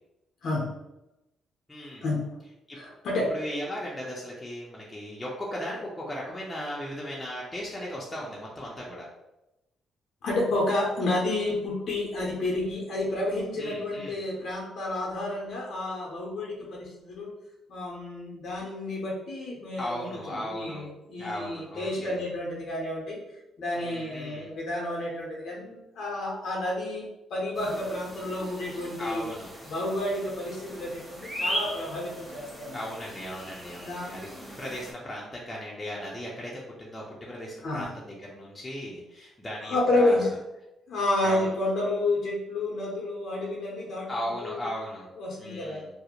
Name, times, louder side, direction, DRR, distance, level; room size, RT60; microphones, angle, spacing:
voice 1, 0.4-0.7 2.0-2.3 2.7-3.3 10.2-17.3 17.7-23.2 23.6-29.3 29.6-32.8 33.8-34.2 37.6-37.9 39.6-40.3 40.9-44.6 45.2-45.8, left 2 dB, 65° left, -3 dB, 0.5 m, -30 dB
voice 2, 1.7-2.0 2.7-2.8 3.3-9.1 13.6-14.2 19.8-20.8 21.2-22.2 23.7-24.5 29.0-29.5 32.7-34.3 34.6-40.3 41.2-41.5 44.1-45.1 45.4-45.9, equal, 15° left, -5 dB, 0.5 m, -37 dB
sound 1, 27.5-34.9, equal, 5° right, 1.0 m, -39 dB
2.4 x 2.0 x 2.8 m, 0.94 s
cardioid pair, 90°, 0 cm